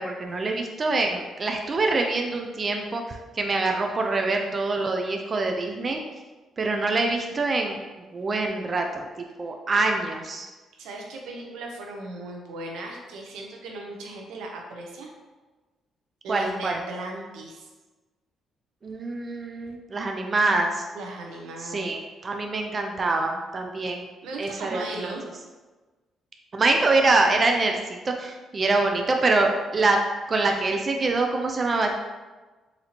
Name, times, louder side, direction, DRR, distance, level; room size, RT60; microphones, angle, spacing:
voice 1, 0.0-6.0 6.6-7.8 8.1-9.1 9.4-10.5 16.3-16.8 18.8-20.9 21.6-24.0 24.4-25.1 26.5-30.0 30.3-31.9, right 3 dB, 35° right, 3 dB, 0.4 m, -25 dB
voice 2, 10.8-15.1 16.2-17.7 20.9-21.9 24.2-25.3, right 2 dB, 90° right, 1 dB, 0.7 m, -37 dB
4.1 x 2.7 x 2.9 m, 1.2 s
cardioid pair, 90°, 0 cm